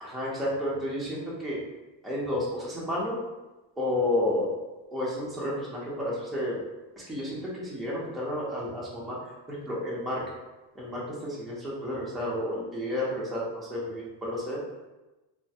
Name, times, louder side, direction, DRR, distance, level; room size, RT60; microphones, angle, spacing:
voice 1, 0.0-1.6 2.0-3.2 3.8-4.6 4.9-6.6 7.0-10.2 10.8-14.6, left 1 dB, ahead, -7 dB, 0.5 m, -31 dB
3.2 x 2.1 x 2.7 m, 1.1 s
cardioid pair, 150°, 45 cm